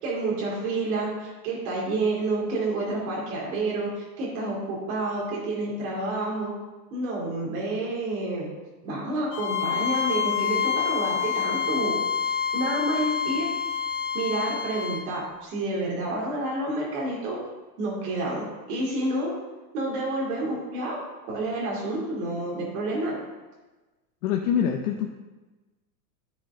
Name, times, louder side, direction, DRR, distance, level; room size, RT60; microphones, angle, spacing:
voice 1, 0.0-6.5 6.9-8.5 8.8-13.5 14.1-17.4 17.8-19.3 19.7-21.0 21.3-23.2, right 2 dB, 70° right, -4 dB, 2.9 m, -29 dB
Bowed string instrument, 9.3-15.1, left 7 dB, 25° left, 0.9 m, -27 dB
voice 2, 24.2-25.1, left 8 dB, 65° left, 3 dB, 0.9 m, -24 dB
10.5 x 6.5 x 3.8 m, 1.2 s
supercardioid pair, 150°, 47 cm